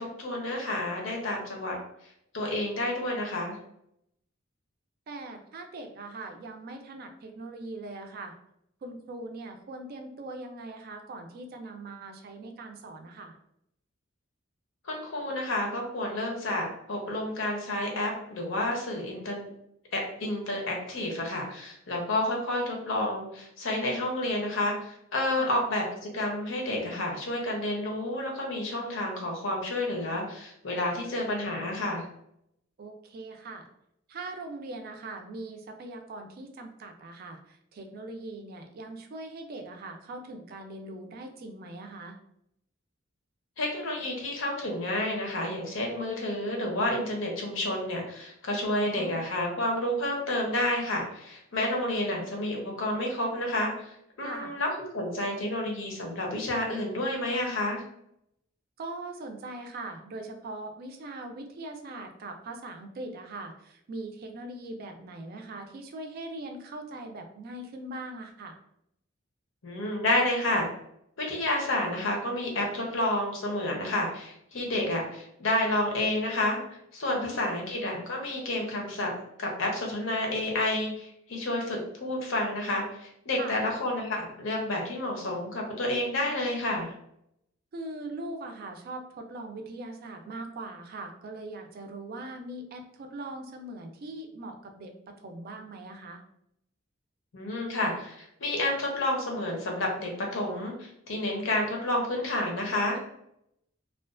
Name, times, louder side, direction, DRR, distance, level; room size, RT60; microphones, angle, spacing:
voice 1, 0.0-1.8 2.3-3.6 14.8-19.5 19.9-25.8 26.1-32.1 43.6-57.8 69.6-70.7 71.2-76.6 76.9-79.1 79.4-86.9 97.3-103.0, left 1 dB, 70° left, 0 dB, 0.7 m, -30 dB
voice 2, 5.1-8.3 8.8-13.4 25.3-25.5 32.8-33.7 34.1-42.2 48.7-49.3 54.2-54.5 58.8-68.6 77.1-77.5 83.4-83.6 87.7-96.2, right 2 dB, 50° right, 5 dB, 0.3 m, -41 dB
2.4 x 2.2 x 2.3 m, 0.76 s
head